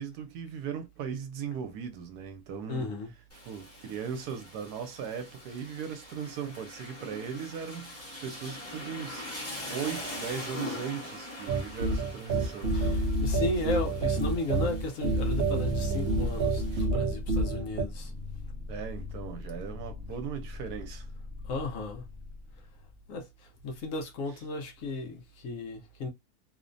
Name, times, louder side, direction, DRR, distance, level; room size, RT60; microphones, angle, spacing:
voice 1, 0.0-2.9 3.5-7.9 8.2-13.0 16.7-16.8 18.7-21.1, right 7 dB, 85° right, 1.2 m, -38 dB
voice 2, 2.7-3.1 12.7-18.1 21.4-22.1 23.1-26.1, left 2 dB, 65° left, 1.0 m, -35 dB
Rain, 3.3-16.8, left 1 dB, 10° left, 0.8 m, -43 dB
sound 1, 11.5-17.8, right 2 dB, 65° right, 0.6 m, -28 dB
sound 2, 15.3-23.1, left 3 dB, 45° right, 0.9 m, -41 dB
3.0 x 2.1 x 2.5 m
omnidirectional pair, 1.7 m